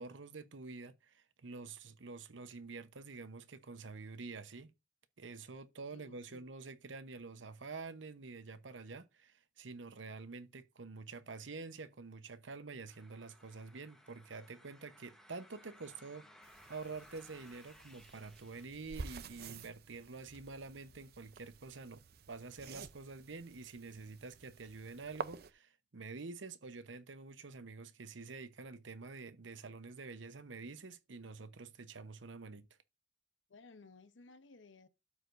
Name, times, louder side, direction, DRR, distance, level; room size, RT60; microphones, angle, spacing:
voice 1, 0.0-4.7 5.2-32.7, right 4 dB, 80° right, 0.9 m, -48 dB
voice 2, 5.9-6.4 33.5-34.9, left 3 dB, 80° left, 0.8 m, -58 dB
sound 1, 12.9-18.6, equal, 5° left, 1.1 m, -61 dB
sound 2, 16.4-25.5, right 5 dB, 55° right, 0.6 m, -50 dB
sound 3, 19.8-23.1, left 4 dB, 60° left, 1.4 m, -71 dB
12.5 x 4.9 x 2.6 m
head